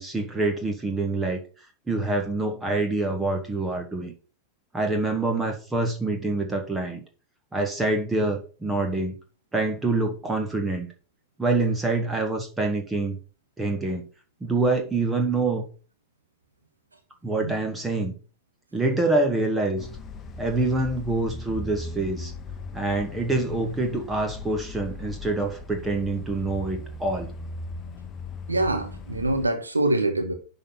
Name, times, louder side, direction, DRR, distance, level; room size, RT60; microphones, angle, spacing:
voice 1, 0.0-1.4 1.9-4.1 4.7-7.0 7.5-9.1 9.5-10.9 11.4-13.2 13.6-14.0 14.4-15.6 17.2-18.1 18.7-19.9 20.4-22.3 22.7-27.3, right 2 dB, 10° right, 1.7 m, -26 dB
sound 1, 19.8-29.5, left 3 dB, 25° left, 1.2 m, -38 dB
voice 2, 28.5-30.3, right 2 dB, 80° right, 1.2 m, -24 dB
11.0 x 4.1 x 5.7 m
figure-of-eight pair, 90°, 0 cm